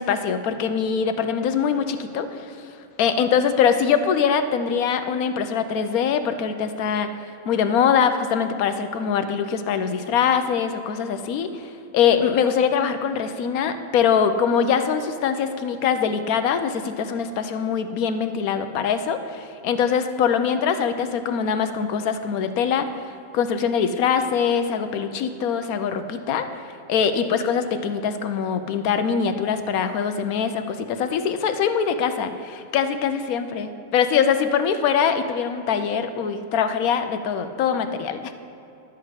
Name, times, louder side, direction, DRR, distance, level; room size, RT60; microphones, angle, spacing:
voice 1, 0.0-2.7 3.0-7.1 7.5-26.6 26.9-38.3, left 7 dB, 80° left, 9 dB, 1.1 m, -23 dB
11.5 x 4.8 x 8.0 m, 2.8 s
omnidirectional pair, 1.5 m